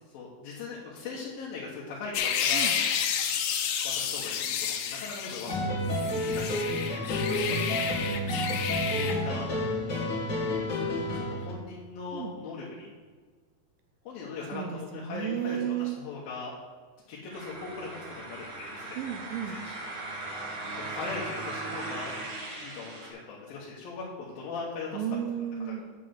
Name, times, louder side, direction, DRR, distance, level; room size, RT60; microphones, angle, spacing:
voice 1, 0.1-2.7 3.9-5.5 6.2-7.9 8.9-9.5 11.1-12.9 14.1-16.5 17.1-19.2 19.5-19.7 20.8-22.1 22.6-25.0 25.6-25.8, left 4 dB, 70° left, -5 dB, 2.8 m, -40 dB
sound 1, 2.1-5.6 5.9-9.1, left 8 dB, 85° left, 2.9 m, -30 dB
sound 2, 5.5-11.5, left 1 dB, 40° left, 1.8 m, -30 dB
voice 2, 8.1-8.7 12.1-12.3 14.5-16.0 19.0-19.6 24.9-25.8, right 9 dB, 80° right, 6 dB, 2.1 m, -33 dB
sound 3, 17.3-23.1, right 2 dB, 60° right, 3.5 m, -38 dB
8.8 x 4.8 x 7.6 m, 1.5 s
omnidirectional pair, 4.7 m